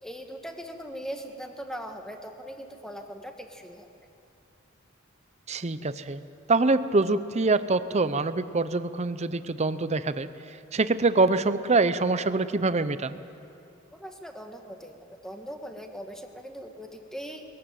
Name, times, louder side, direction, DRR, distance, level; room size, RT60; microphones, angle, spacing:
voice 1, 0.0-3.9 13.9-17.4, equal, 5° left, 4 dB, 1.5 m, -40 dB
voice 2, 5.5-6.2 6.5-10.3 10.7-13.2, right 3 dB, 30° right, 13 dB, 0.7 m, -25 dB
21.5 x 15.0 x 9.2 m, 2.8 s
head